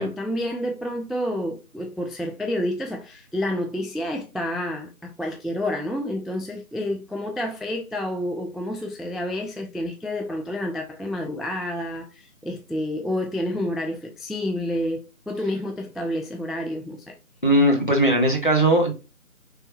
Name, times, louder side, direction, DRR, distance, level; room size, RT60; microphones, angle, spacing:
voice 1, 0.0-17.2, left 1 dB, ahead, 0.3 m, -29 dB
voice 2, 17.4-18.9, right 1 dB, 35° left, 0.6 m, -19 dB
3.2 x 2.5 x 3.0 m
figure-of-eight pair, 170°, 44 cm